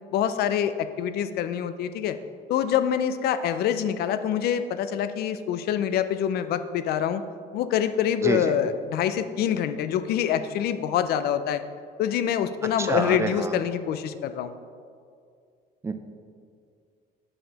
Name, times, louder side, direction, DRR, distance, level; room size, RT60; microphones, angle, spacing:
voice 1, 0.1-2.2 2.5-7.2 7.5-11.6 12.0-14.5, left 9 dB, 70° left, 11 dB, 0.4 m, -25 dB
voice 2, 12.8-13.6 15.8-15.9, right 3 dB, 15° right, 8 dB, 0.4 m, -27 dB
7.6 x 5.4 x 2.9 m, 2.2 s
cardioid pair, 110°, 17 cm